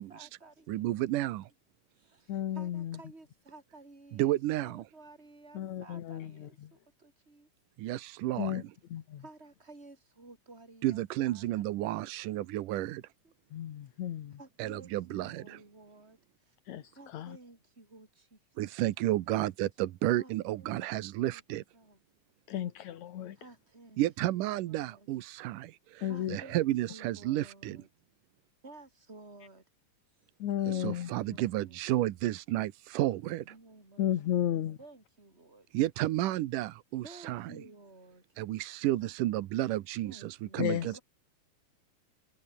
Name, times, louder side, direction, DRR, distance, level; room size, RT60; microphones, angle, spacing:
voice 1, 0.0-0.8 2.0-7.5 9.2-11.6 13.2-13.3 14.4-16.2 16.5-16.6 16.9-18.4 20.2-20.8 21.3-21.4 21.7-22.0 23.4-24.0 24.4-25.1 26.1-27.9 28.6-29.6 30.7-31.8 33.0-35.7 37.0-38.2 40.0-41.0, right 2 dB, 20° right, 6.0 m, -54 dB
voice 2, 0.7-1.5 4.1-4.9 7.8-8.7 10.8-13.0 14.6-15.6 18.6-21.6 24.0-27.8 30.7-33.6 35.7-37.6 38.4-41.0, right 15 dB, 85° right, 2.6 m, -32 dB
voice 3, 2.3-3.0 5.5-6.7 8.4-8.6 8.9-9.2 13.5-14.4 16.7-17.4 22.5-23.4 26.0-26.4 30.4-31.1 34.0-34.8 40.6-41.0, left 11 dB, 65° left, 2.7 m, -33 dB
omnidirectional pair, 3.6 m